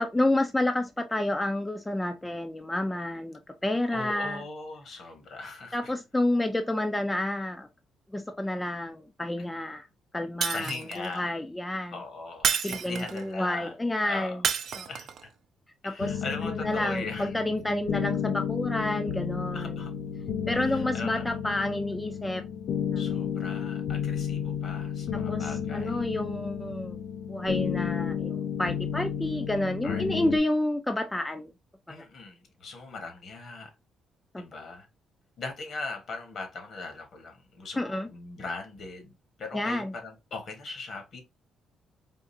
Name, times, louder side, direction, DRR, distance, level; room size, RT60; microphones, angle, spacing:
voice 1, 0.0-4.4 5.7-7.7 8.1-9.9 10.1-12.0 12.6-14.4 14.7-14.9 15.8-19.8 20.5-22.4 22.9-23.0 25.3-27.0 27.3-31.5 31.9-32.0 34.3-34.4 37.8-38.1 39.5-39.9, left 1 dB, 10° left, 0.4 m, -29 dB
voice 2, 3.6-5.9 10.5-11.3 11.9-13.7 14.0-14.4 14.9-15.1 15.8-17.3 19.5-19.9 20.5-21.7 23.0-26.0 29.8-30.0 31.9-33.7 34.4-34.9 35.4-41.2, left 3 dB, 60° left, 1.2 m, -40 dB
Shatter, 10.4-11.1 12.4-13.3 14.4-15.2, right 7 dB, 65° right, 0.4 m, -29 dB
sound 1, 16.0-30.4, left 8 dB, 80° left, 0.4 m, -32 dB
3.6 x 2.5 x 2.6 m
cardioid pair, 90°, 0 cm